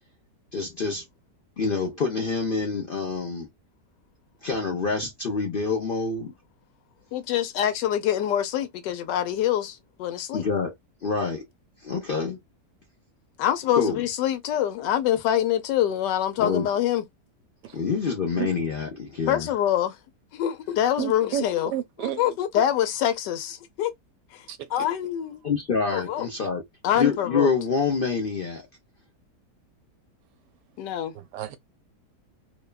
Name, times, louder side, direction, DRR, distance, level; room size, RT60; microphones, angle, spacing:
voice 1, 0.5-1.0 1.6-3.5 4.4-6.3 10.3-10.7 11.0-11.4 11.8-12.4 13.7-14.0 16.4-16.7 17.7-19.5 25.4-26.6 26.9-28.7, left 4 dB, 60° left, 0.5 m, -26 dB
voice 2, 7.1-10.4 13.4-17.0 19.3-20.0 20.3-21.7 22.0-23.9 24.3-24.4 24.7-25.4 25.9-26.3 26.8-27.5 30.8-31.1, left 11 dB, 90° left, 1.3 m, -25 dB
voice 3, 21.0-21.4 21.7-22.2 24.5-24.6 31.2-31.6, right 11 dB, 85° right, 1.2 m, -30 dB
3.0 x 2.2 x 2.2 m
omnidirectional pair, 1.8 m